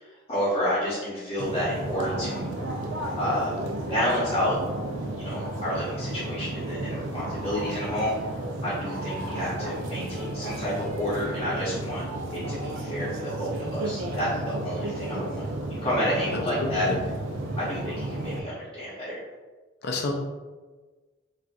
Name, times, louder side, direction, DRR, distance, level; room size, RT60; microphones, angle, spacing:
voice 1, 0.3-2.6 3.2-3.5 3.9-4.6 5.2-8.1 8.6-12.0 12.3-15.4 15.8-16.9 17.6-19.2, equal, 30° left, -10 dB, 0.8 m, -29 dB
sound 1, 1.4-18.4, right 1 dB, 60° right, 0.4 m, -33 dB
voice 2, 16.3-17.0 19.8-20.1, left 3 dB, 50° left, 1 dB, 0.5 m, -30 dB
4.1 x 2.4 x 2.4 m, 1.3 s
head